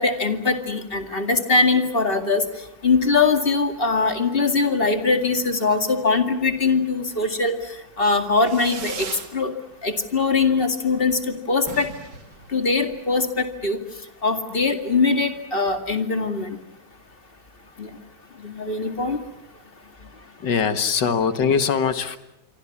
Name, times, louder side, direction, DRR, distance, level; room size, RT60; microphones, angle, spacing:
voice 1, 0.0-2.4 2.8-7.6 8.0-9.1 9.3-9.5 9.8-11.9 12.5-13.8 14.2-16.6 17.8-17.9 18.4-19.2, left 4 dB, 30° left, 7 dB, 2.3 m, -21 dB
Fireworks, 8.4-9.3 9.7-10.3 10.5-10.6 10.9-11.0 11.2-11.3 11.6-13.2, right 5 dB, 70° right, 2.6 m, -37 dB
voice 2, 20.4-22.2, left 6 dB, 70° left, 10 dB, 2.2 m, -22 dB
27.5 x 24.5 x 7.3 m, 0.85 s
omnidirectional pair, 2.0 m